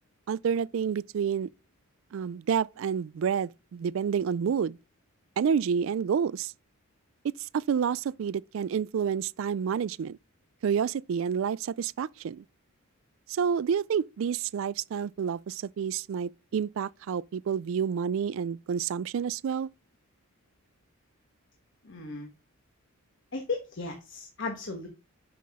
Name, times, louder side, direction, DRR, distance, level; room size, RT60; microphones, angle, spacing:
voice 1, 0.3-1.5 2.1-4.8 5.4-6.5 7.4-10.2 10.6-12.4 13.3-19.7, right 7 dB, 60° right, 0.3 m, -29 dB
voice 2, 21.8-22.3 23.3-24.9, left 3 dB, 55° left, 1.4 m, -35 dB
8.4 x 5.9 x 3.6 m
head